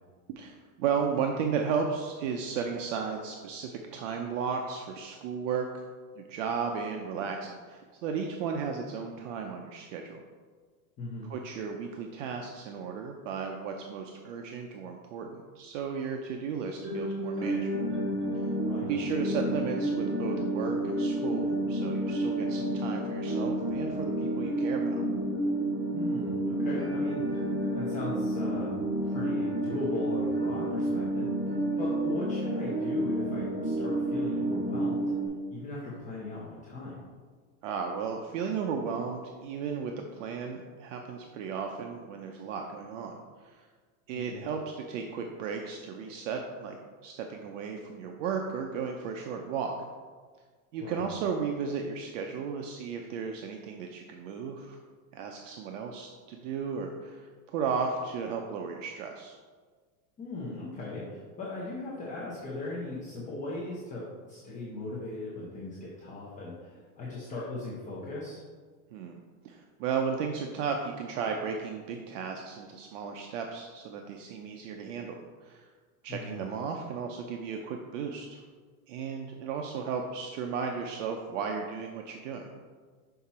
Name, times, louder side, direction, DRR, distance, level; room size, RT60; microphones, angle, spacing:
voice 1, 0.3-5.8 6.2-10.2 11.2-18.0 18.3-18.5 18.8-25.0 37.6-43.7 44.1-46.8 47.0-49.7 50.7-54.8 55.1-59.3 68.9-69.2 69.4-75.7 76.0-78.4 78.9-82.5, right 6 dB, 55° right, 3 dB, 0.7 m, -34 dB
voice 2, 11.0-11.3 18.6-18.9 25.9-27.4 27.7-28.7 29.0-31.3 31.8-35.0 35.5-37.0 44.1-44.4 50.8-51.0 60.2-68.4 76.1-76.3, left 2 dB, 15° left, -7 dB, 0.8 m, -38 dB
sound 1, 16.8-35.3, right 1 dB, 25° right, 2.0 m, -30 dB
5.7 x 5.7 x 4.2 m, 1.5 s
supercardioid pair, 170°, 45 cm